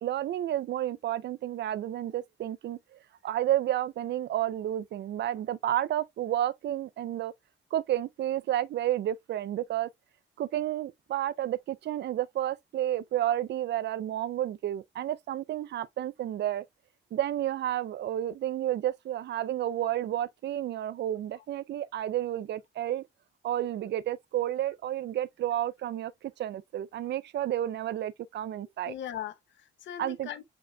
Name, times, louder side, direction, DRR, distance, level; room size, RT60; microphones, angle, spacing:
voice 1, 0.0-7.3 7.7-9.9 10.4-16.6 17.1-23.0 23.4-26.1 26.4-28.9 30.0-30.3, right 12 dB, 60° right, 0.5 m, -31 dB
voice 2, 28.5-30.4, left 10 dB, 65° left, 0.8 m, -40 dB
5.0 x 4.4 x 2.3 m
cardioid pair, 90°, 20 cm